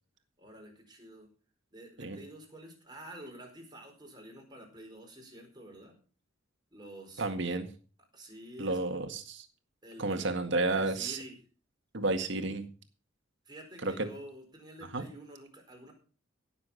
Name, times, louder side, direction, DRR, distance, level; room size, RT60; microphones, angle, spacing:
voice 1, 0.4-1.3 1.7-6.0 6.7-7.2 8.1-8.8 9.8-10.3 10.7-11.4 13.5-15.9, right 1 dB, 20° right, 2 dB, 4.6 m, -49 dB
voice 2, 7.2-7.7 8.6-9.5 10.0-11.2 11.9-12.7 13.8-14.1 14.9-15.0, right 2 dB, 65° right, 7 dB, 1.9 m, -31 dB
16.5 x 7.2 x 5.6 m, 0.38 s
head